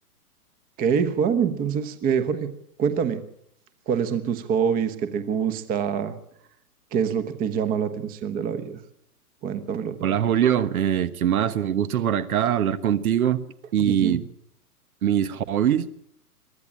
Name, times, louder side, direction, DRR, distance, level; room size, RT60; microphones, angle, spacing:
voice 1, 0.8-2.5 2.8-3.2 3.9-6.2 6.9-8.8 9.4-10.1 13.8-14.2, right 7 dB, 20° right, 1.2 m, -25 dB
voice 2, 10.0-13.4 13.7-14.2 15.0-15.9, right 10 dB, 65° right, 1.4 m, -22 dB
23.0 x 13.5 x 8.8 m
hypercardioid pair, 145°, 46 cm